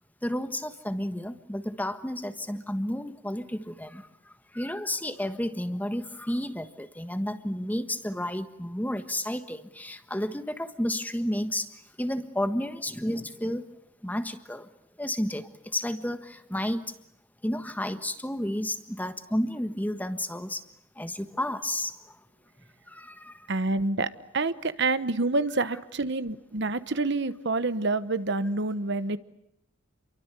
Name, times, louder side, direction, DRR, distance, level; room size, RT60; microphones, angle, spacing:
voice 1, 0.2-13.7 14.0-14.7 15.0-16.9 17.4-20.6 20.9-22.2 22.9-23.5, left 1 dB, 10° left, 10 dB, 1.4 m, -32 dB
voice 2, 23.5-29.2, right 3 dB, 55° right, 13 dB, 1.1 m, -27 dB
29.0 x 23.5 x 8.2 m, 0.77 s
head